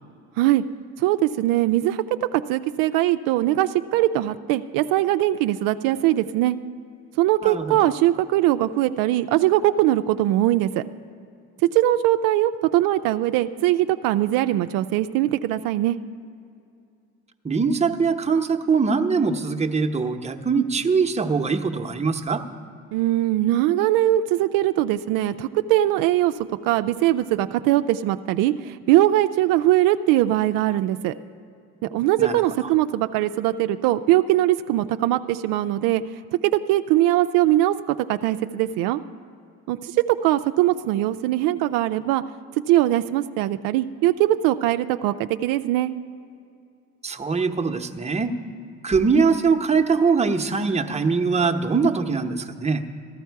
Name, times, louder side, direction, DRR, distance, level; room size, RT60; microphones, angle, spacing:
voice 1, 1.0-2.0 2.3-6.6 7.2-10.8 11.7-16.0 22.9-26.3 26.6-31.1 31.9-36.0 36.4-39.0 39.7-42.2 42.7-45.9, right 14 dB, 80° right, 9 dB, 0.5 m, -21 dB
voice 2, 7.4-7.8 17.4-22.4 32.2-32.7 47.0-48.3 48.8-52.8, right 5 dB, 20° right, 4 dB, 0.9 m, -22 dB
14.5 x 12.0 x 4.6 m, 2.5 s
supercardioid pair, 80°, 33 cm